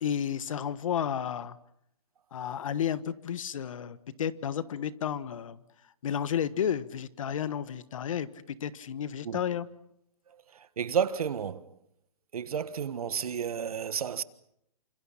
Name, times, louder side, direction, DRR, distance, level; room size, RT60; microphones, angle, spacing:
voice 1, 0.0-1.6 2.3-5.6 6.0-8.3 8.6-9.7, left 8 dB, 60° left, 1.4 m, -32 dB
voice 2, 10.5-11.7 12.3-14.2, right 7 dB, 75° right, 1.4 m, -31 dB
29.0 x 26.0 x 5.8 m
hypercardioid pair, 160°, 19 cm